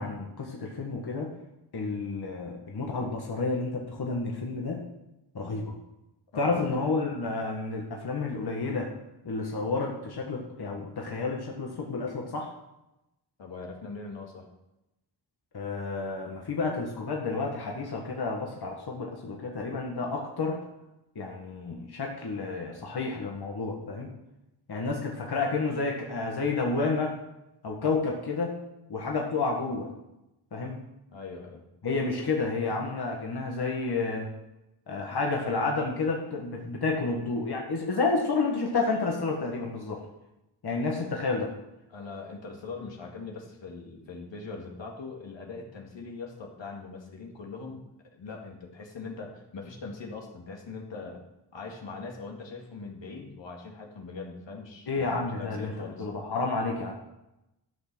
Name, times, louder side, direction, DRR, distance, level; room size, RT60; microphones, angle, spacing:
voice 1, 0.0-1.3 1.7-4.8 5.3-5.7 6.4-8.9 9.2-12.5 15.5-20.6 21.2-24.1 24.7-27.2 27.6-28.6 28.9-29.9 30.5-30.8 31.8-34.3 34.9-40.0 40.6-41.5 54.9-55.7 56.0-56.9, left 3 dB, 60° left, 0 dB, 1.8 m, -30 dB
voice 2, 6.3-6.7 13.4-14.5 31.1-31.6 41.9-47.9 48.1-51.2 51.5-56.1, left 4 dB, 75° left, 0 dB, 2.2 m, -41 dB
12.5 x 6.1 x 6.2 m, 0.92 s
cardioid pair, 65°, 44 cm